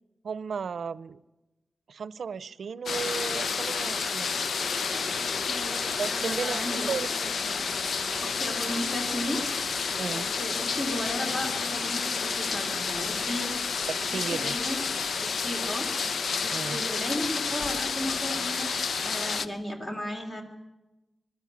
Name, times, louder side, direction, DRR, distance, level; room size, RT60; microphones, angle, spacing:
voice 1, 0.2-1.2 1.9-4.3 6.0-7.1 10.0-10.3 13.9-14.6 16.5-16.8, right 6 dB, 80° right, 18 dB, 0.6 m, -34 dB
sound 1, 2.9-19.5, left 5 dB, 85° left, 0.7 m, -30 dB
voice 2, 5.2-7.7 8.2-9.4 10.1-13.5 14.0-14.8 15.2-15.9 16.4-20.4, left 1 dB, 30° left, 4 dB, 2.9 m, -35 dB
21.5 x 13.0 x 9.5 m, 1.1 s
wide cardioid pair, 170°, 0 cm